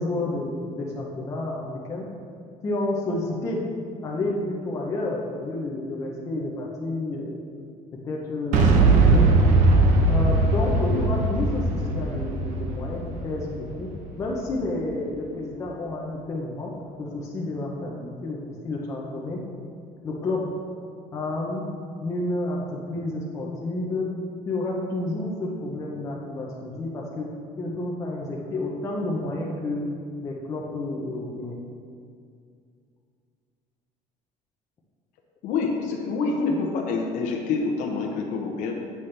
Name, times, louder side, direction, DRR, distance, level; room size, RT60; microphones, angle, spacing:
voice 1, 0.0-2.1 2.6-3.6 4.0-7.4 8.0-9.3 10.1-13.9 14.2-16.7 17.0-19.4 20.0-20.4 21.1-21.7 22.0-24.1 24.5-27.3 27.6-29.9 30.2-31.6, left 2 dB, 20° left, -3 dB, 0.6 m, -30 dB
Boom, 8.5-14.4, right 3 dB, 60° right, 0.7 m, -20 dB
voice 2, 35.4-38.7, left 4 dB, 65° left, 0 dB, 0.8 m, -26 dB
8.2 x 5.7 x 3.3 m, 2.3 s
cardioid pair, 170°, 14 cm